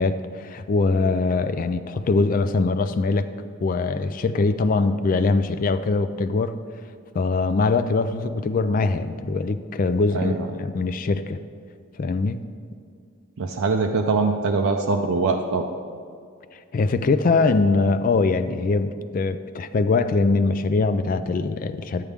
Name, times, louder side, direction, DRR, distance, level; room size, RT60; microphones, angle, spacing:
voice 1, 0.0-3.3 3.6-6.6 7.1-11.4 12.0-12.4 16.7-22.1, left 3 dB, 40° left, 11 dB, 0.3 m, -22 dB
voice 2, 10.1-10.5 13.4-15.7, right 4 dB, 85° right, 3 dB, 0.5 m, -23 dB
11.0 x 8.3 x 3.5 m, 2.3 s
head